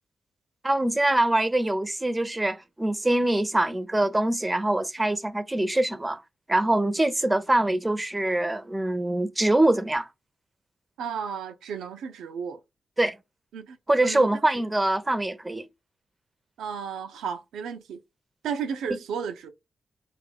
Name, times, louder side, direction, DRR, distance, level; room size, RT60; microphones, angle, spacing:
voice 1, 0.6-6.2 6.5-10.1 13.0-13.2 13.9-15.7 18.9-19.0, right 1 dB, 20° right, 0.6 m, -24 dB
voice 2, 11.0-12.6 13.5-14.4 16.6-18.0 18.4-19.5, right 7 dB, 85° right, 0.5 m, -33 dB
3.6 x 2.4 x 3.4 m
supercardioid pair, 50°, 0 cm